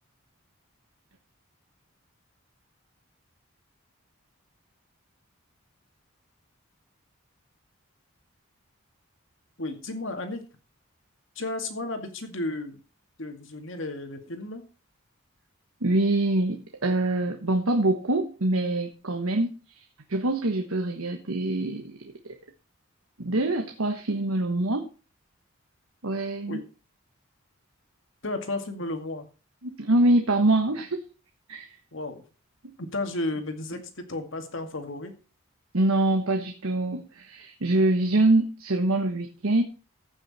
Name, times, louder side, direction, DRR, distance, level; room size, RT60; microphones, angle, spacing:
voice 1, 9.6-10.4 11.4-12.8 13.2-14.6 26.5-26.6 28.2-29.3 31.9-32.2 32.8-35.1, left 2 dB, 65° left, 6 dB, 2.2 m, -33 dB
voice 2, 15.8-19.5 19.7-19.8 20.1-22.1 23.2-24.9 26.0-26.6 29.6-31.0 31.5-31.7 32.6-32.7 33.7-33.8 35.7-39.6, right 2 dB, 85° right, 5 dB, 1.4 m, -24 dB
15.5 x 6.4 x 4.3 m, 0.35 s
head